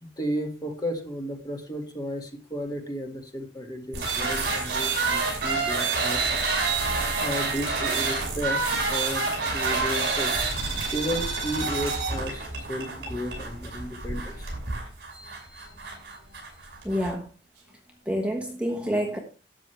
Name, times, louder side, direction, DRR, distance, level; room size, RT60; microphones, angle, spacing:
voice 1, 0.0-6.2 6.7-6.9 7.2-8.6 8.9-9.3 9.5-10.3 10.9-14.5, equal, 20° left, 2.0 m, -33 dB
sound 1, 3.9-17.1, right 4 dB, 60° right, 5.9 m, -28 dB
voice 2, 15.1-15.7 16.1-16.2 16.8-17.3 18.0-19.2, equal, 5° right, 1.2 m, -29 dB
12.5 x 8.9 x 3.3 m
head